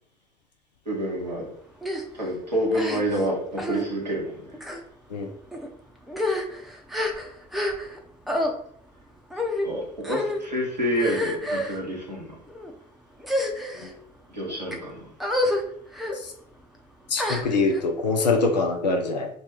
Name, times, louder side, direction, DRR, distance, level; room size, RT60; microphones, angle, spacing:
voice 1, 0.9-1.5 2.1-4.4 9.6-12.3 14.3-15.0, equal, 90° right, -3 dB, 0.9 m, -28 dB
sound 1, 1.8-2.0 2.7-3.2 3.6-3.8 4.5-4.8 5.5-5.7 6.1-8.0 8.3-8.5 9.3-9.7 10.0-10.4 10.9-11.8 12.5-12.7 13.2-13.9 14.5-14.8 15.2-15.6 15.9-16.2 17.2-17.8, left 1 dB, ahead, 0.6 m, -28 dB
voice 2, 17.1-19.3, left 3 dB, 80° left, 3 dB, 0.5 m, -24 dB
3.3 x 2.2 x 4.2 m, 0.63 s
figure-of-eight pair, 55°, 21 cm